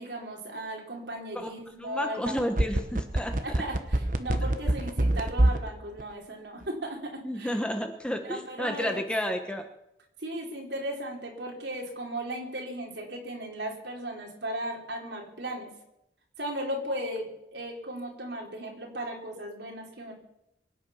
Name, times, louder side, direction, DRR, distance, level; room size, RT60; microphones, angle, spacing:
voice 1, 0.0-2.4 3.4-7.5 8.2-9.0 10.2-15.7 16.4-20.1, right 1 dB, 75° right, 0 dB, 3.9 m, -36 dB
voice 2, 1.8-3.6 7.2-9.6, equal, 5° left, 5 dB, 1.2 m, -31 dB
sound 1, 2.3-5.7 6.0-6.1, right 1 dB, 45° right, 1.2 m, -24 dB
23.5 x 9.8 x 5.7 m, 0.84 s
head